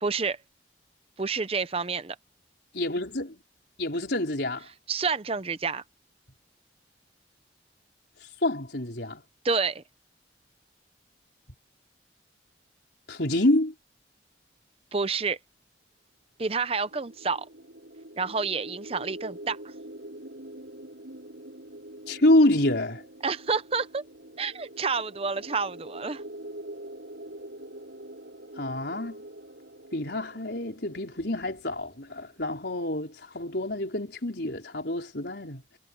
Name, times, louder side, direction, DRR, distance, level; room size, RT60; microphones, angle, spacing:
voice 1, 0.0-0.4 1.2-2.2 4.9-5.8 9.4-9.8 14.9-15.4 16.4-17.5 18.2-19.6 23.2-24.0 24.4-26.2, right 4 dB, 30° right, 0.7 m, -29 dB
voice 2, 2.7-3.4 3.8-4.7 8.4-9.2 13.1-13.7 22.1-23.0 28.6-29.2 29.9-35.6, left 1 dB, 65° left, 4.3 m, -27 dB
sound 1, 16.6-32.3, right 1 dB, 75° right, 8.0 m, -45 dB
head